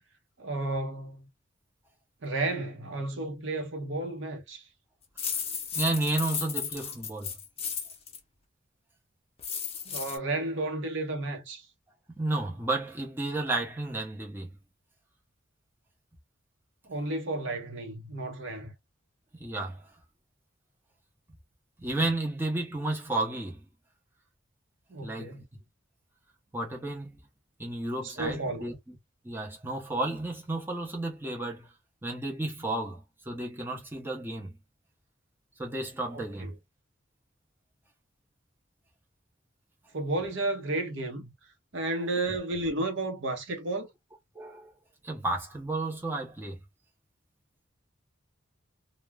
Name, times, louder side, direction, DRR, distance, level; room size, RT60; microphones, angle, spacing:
voice 1, 0.4-1.3 2.2-4.7 9.9-11.7 16.9-18.7 24.9-25.4 28.0-28.8 36.1-36.5 39.9-41.3 41.7-43.9, right 2 dB, 65° right, 0.7 m, -32 dB
sound 1, 5.2-8.2 9.4-10.2, left 7 dB, 30° left, 0.5 m, -34 dB
voice 2, 5.7-7.3 12.1-14.5 19.3-19.9 21.8-23.6 25.0-25.4 26.5-27.1 27.6-29.0 29.2-31.7 32.0-34.5 35.6-36.5 44.3-44.7 45.0-46.6, right 2 dB, 10° right, 0.6 m, -32 dB
2.3 x 2.0 x 3.3 m
head